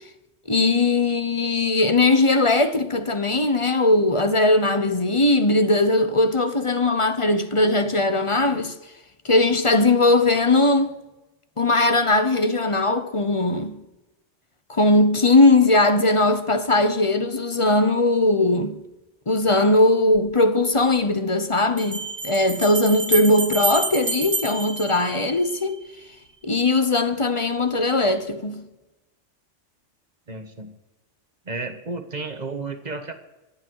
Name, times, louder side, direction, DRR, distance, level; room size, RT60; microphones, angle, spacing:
voice 1, 0.5-8.8 9.2-10.9 11.6-13.8 14.7-18.8 19.3-25.8 26.4-28.6, left 2 dB, 30° left, 0.9 m, -19 dB
sound 1, 20.1-20.2 21.8-25.7, right 3 dB, 75° right, 2.3 m, -29 dB
voice 2, 30.3-30.7 31.4-33.1, right 3 dB, 35° right, 1.5 m, -32 dB
26.0 x 8.8 x 4.7 m
omnidirectional pair, 1.2 m